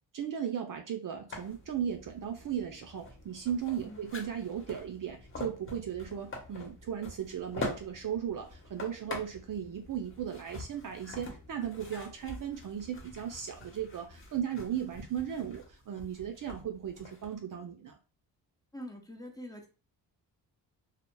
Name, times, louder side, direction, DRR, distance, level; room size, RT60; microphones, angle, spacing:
voice 1, 0.1-18.0, right 9 dB, 45° right, 5 dB, 0.5 m, -36 dB
sound 1, 1.3-17.3, left 2 dB, 25° left, 1.0 m, -45 dB
voice 2, 18.7-19.7, equal, 10° left, 1 dB, 0.7 m, -44 dB
2.8 x 2.0 x 2.2 m, 0.34 s
supercardioid pair, 55°, 48 cm